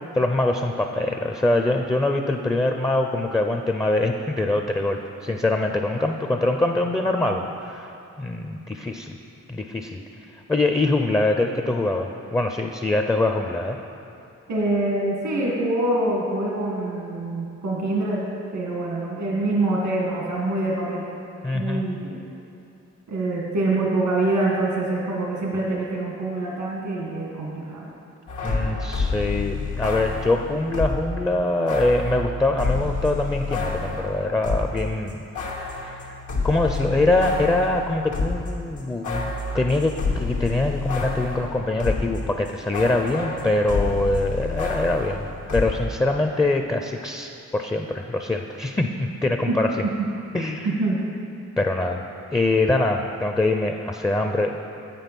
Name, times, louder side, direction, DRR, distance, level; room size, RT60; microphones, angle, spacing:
voice 1, 0.2-7.9 8.2-9.2 9.5-10.0 10.5-13.8 21.4-21.9 28.4-35.2 35.6-45.3 45.5-49.7 50.3-50.7 51.6-52.0 52.3-54.6, left 2 dB, 10° left, 4 dB, 0.4 m, -23 dB
voice 2, 14.5-18.2 18.5-21.1 21.5-22.2 23.1-27.9 49.5-49.6 50.7-51.0, right 2 dB, 85° right, -3 dB, 1.6 m, -25 dB
sound 1, 28.3-31.1 31.7-34.8 35.1-42.2 42.5-45.7, left 3 dB, 85° left, 1.2 m, -28 dB
7.6 x 5.3 x 5.9 m, 2.6 s
cardioid pair, 70°, 29 cm